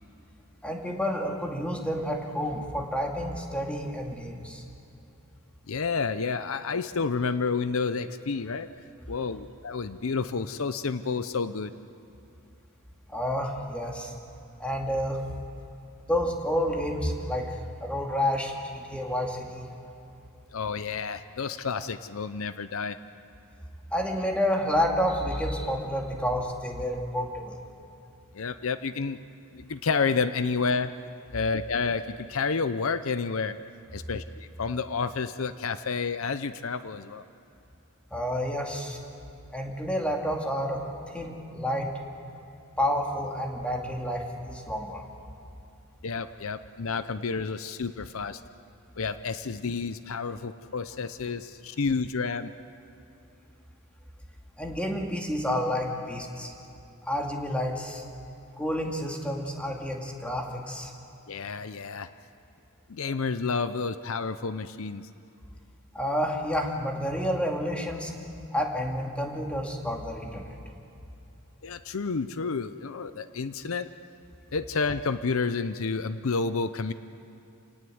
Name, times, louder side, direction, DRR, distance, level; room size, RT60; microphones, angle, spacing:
voice 1, 0.6-4.6 13.1-14.1 14.6-15.2 16.1-19.7 23.9-27.6 38.1-39.0 39.5-41.9 42.8-45.0 54.6-56.5 57.0-58.0 58.6-60.9 65.9-68.1 68.5-70.6, equal, 5° left, 0 dB, 2.4 m, -29 dB
voice 2, 5.7-8.7 9.1-11.7 20.5-23.0 28.3-29.2 29.5-30.9 31.3-33.6 33.9-37.2 46.0-48.4 49.0-52.5 61.3-62.1 62.9-65.1 71.6-73.9 74.5-76.9, left 4 dB, 65° left, 12 dB, 0.6 m, -30 dB
28.5 x 19.0 x 7.9 m, 2.9 s
head